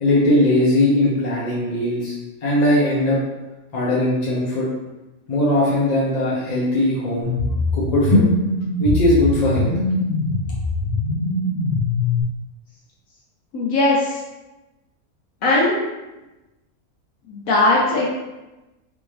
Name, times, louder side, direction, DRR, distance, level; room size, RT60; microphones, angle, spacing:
voice 1, 0.0-2.1 2.4-3.2 3.7-4.7 5.3-7.3 7.7-8.2 8.8-9.7, left 1 dB, 45° left, -6 dB, 0.6 m, -19 dB
sound 1, 7.2-12.2, left 2 dB, 15° left, 0.9 m, -21 dB
voice 2, 13.5-14.0 15.4-15.8 17.3-18.0, left 2 dB, 75° left, -4 dB, 1.0 m, -18 dB
3.6 x 2.6 x 3.1 m, 1.1 s
omnidirectional pair, 1.5 m